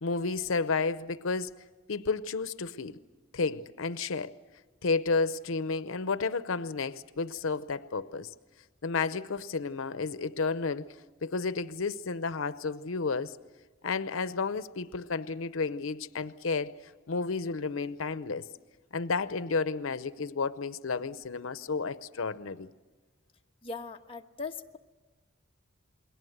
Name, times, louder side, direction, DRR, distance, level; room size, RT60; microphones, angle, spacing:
voice 1, 0.0-1.5 1.9-3.0 3.3-4.3 4.8-8.3 8.8-10.9 11.2-13.4 13.8-16.7 17.1-18.5 18.9-22.7, left 4 dB, 85° left, 14 dB, 0.7 m, -31 dB
voice 2, 23.6-24.8, left 4 dB, 25° left, 2 dB, 1.2 m, -39 dB
28.5 x 21.5 x 8.0 m, 1.2 s
head